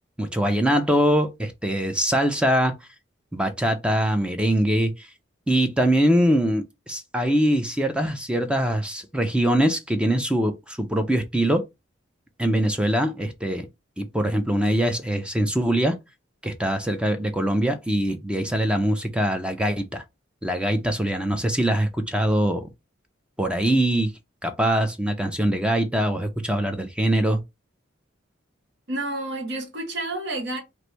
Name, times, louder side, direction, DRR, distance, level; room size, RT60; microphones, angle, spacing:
voice 1, 0.2-2.7 3.3-5.1 5.5-11.6 12.4-13.7 14.0-16.0 16.4-20.0 20.4-22.7 23.4-24.1 24.4-27.4, right 1 dB, 5° right, 0.5 m, -23 dB
voice 2, 28.9-30.6, right 2 dB, 60° right, 1.2 m, -30 dB
3.1 x 2.6 x 4.2 m
head